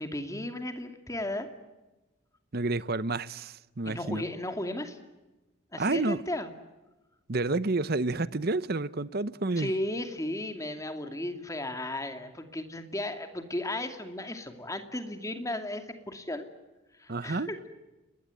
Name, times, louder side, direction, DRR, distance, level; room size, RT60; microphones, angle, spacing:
voice 1, 0.0-1.5 3.8-5.0 5.7-6.5 9.6-16.5 17.0-17.7, left 1 dB, 15° left, 2.5 m, -35 dB
voice 2, 2.5-4.2 5.8-6.2 7.3-9.7 17.1-17.5, right 2 dB, 45° right, 0.9 m, -29 dB
29.5 x 21.0 x 9.1 m
head